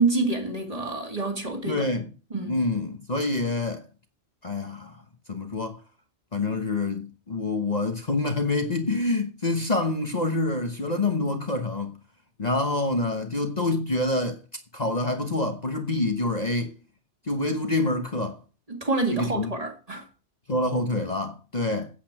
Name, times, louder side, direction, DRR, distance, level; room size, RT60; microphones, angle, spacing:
voice 1, 0.0-1.9 2.3-2.6 18.7-20.1, right 3 dB, 30° right, 2.3 m, -27 dB
voice 2, 1.7-2.0 2.5-3.9 4.4-5.0 5.3-5.8 6.3-11.9 12.4-14.4 14.7-16.7 17.3-18.4 19.1-19.5 20.5-21.9, left 2 dB, 35° left, 1.2 m, -26 dB
8.5 x 8.4 x 6.0 m
omnidirectional pair, 1.2 m